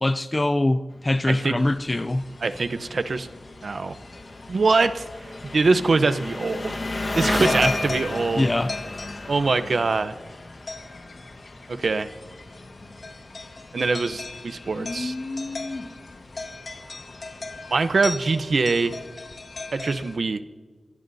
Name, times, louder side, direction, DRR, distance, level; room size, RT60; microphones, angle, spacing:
voice 1, 0.0-2.2 7.4-7.7 8.4-8.7, left 1 dB, 25° left, 0.5 m, -23 dB
Engine, 0.9-19.0, left 2 dB, 45° left, 1.5 m, -36 dB
voice 2, 1.3-1.6 2.4-3.3 3.6-4.0 4.5-5.0 5.5-6.8 7.1-8.5 9.3-10.1 11.7-12.1 13.7-15.1 17.7-18.9 19.7-20.4, right 3 dB, 65° right, 0.8 m, -23 dB
sound 1, 1.6-20.2, left 3 dB, 65° left, 1.8 m, -37 dB
25.0 x 18.5 x 2.8 m
wide cardioid pair, 105°, 0 cm